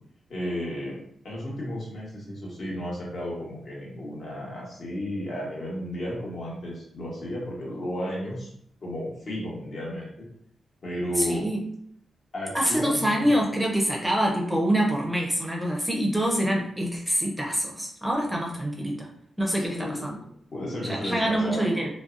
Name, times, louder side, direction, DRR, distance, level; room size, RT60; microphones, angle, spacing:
voice 1, 0.3-1.0 1.2-8.5 8.8-10.1 10.8-11.5 12.3-13.3 19.6-20.1 20.5-21.9, left 1 dB, 60° left, -5 dB, 1.1 m, -33 dB
voice 2, 11.2-11.6 12.5-19.1 19.4-20.2 20.8-21.9, equal, 5° right, -1 dB, 0.5 m, -25 dB
2.6 x 2.1 x 2.4 m, 0.68 s
cardioid pair, 80°, 0 cm